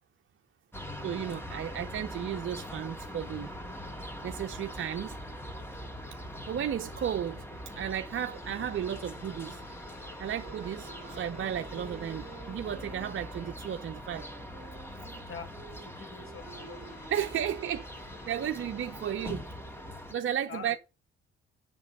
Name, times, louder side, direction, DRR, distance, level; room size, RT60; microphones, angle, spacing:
sound 1, 0.7-20.1, equal, 10° left, 2.3 m, -42 dB
voice 1, 1.0-3.5 4.2-5.1 6.5-7.4 7.7-9.6 10.2-14.3 17.1-19.5 20.1-20.7, right 9 dB, 45° right, 0.7 m, -34 dB
sound 2, 8.3-13.8 16.3-19.1, left 4 dB, 75° left, 2.3 m, -55 dB
sound 3, 10.3-17.9, right 4 dB, 25° right, 1.4 m, -51 dB
voice 2, 15.3-17.1 20.5-20.8, left 5 dB, 45° left, 2.6 m, -45 dB
7.3 x 6.1 x 5.4 m
hypercardioid pair, 50°, 30 cm